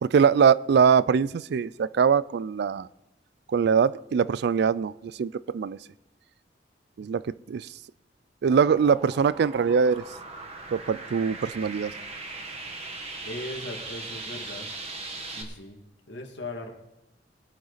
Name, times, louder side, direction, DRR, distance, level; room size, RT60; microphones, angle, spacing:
voice 1, 0.0-2.9 3.5-5.8 7.0-7.7 8.4-10.0 10.7-11.9, right 6 dB, 60° right, 0.3 m, -22 dB
sound 1, 8.5-15.4, right 3 dB, 35° right, 1.7 m, -39 dB
voice 2, 13.2-14.7 15.3-15.8 16.1-16.7, left 1 dB, 80° left, 2.1 m, -38 dB
21.0 x 8.8 x 4.1 m
head